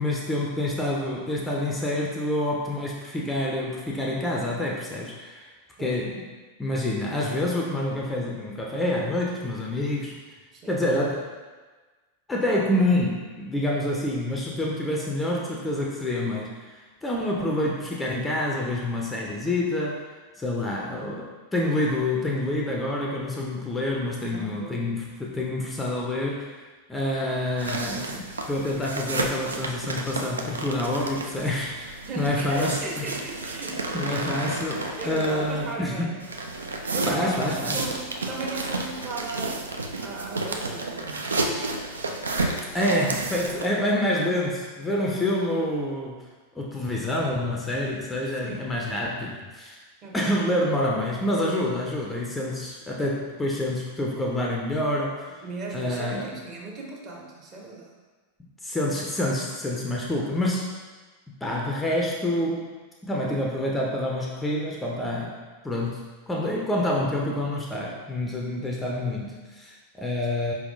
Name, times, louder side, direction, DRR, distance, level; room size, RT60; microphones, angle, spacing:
voice 1, 0.0-5.5 5.8-6.2 6.6-10.1 10.7-11.3 12.3-16.5 17.0-20.0 20.4-26.5 26.9-33.0 33.9-36.1 37.1-37.8 42.7-46.2 46.6-49.8 50.1-55.3 55.7-56.3 58.6-60.7 61.4-62.7 63.0-65.4 65.6-70.5, left 1 dB, 10° left, -2 dB, 0.5 m, -27 dB
voice 2, 24.3-24.9 32.1-34.3 35.0-36.6 36.9-39.7 40.0-41.2 48.3-48.7 50.0-50.4 55.3-57.9, right 3 dB, 30° right, -2 dB, 0.9 m, -37 dB
sound 1, 27.6-35.7 36.2-43.7, right 2 dB, 75° right, 0.4 m, -31 dB
4.6 x 3.4 x 2.5 m, 1.3 s
figure-of-eight pair, 90°, 0 cm